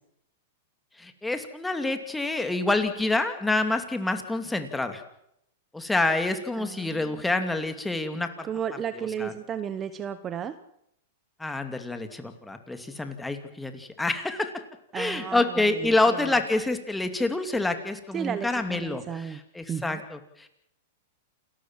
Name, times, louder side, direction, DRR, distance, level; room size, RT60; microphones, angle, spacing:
voice 1, 1.0-5.0 5.7-8.5 9.0-9.3 11.4-14.5 14.9-20.5, left 2 dB, 5° left, 7 dB, 2.5 m, -27 dB
voice 2, 6.6-7.2 8.4-10.5 14.9-16.2 18.1-19.4 19.7-20.0, right 8 dB, 25° right, 12 dB, 1.1 m, -34 dB
29.0 x 13.5 x 7.5 m, 0.76 s
hypercardioid pair, 130°, 0 cm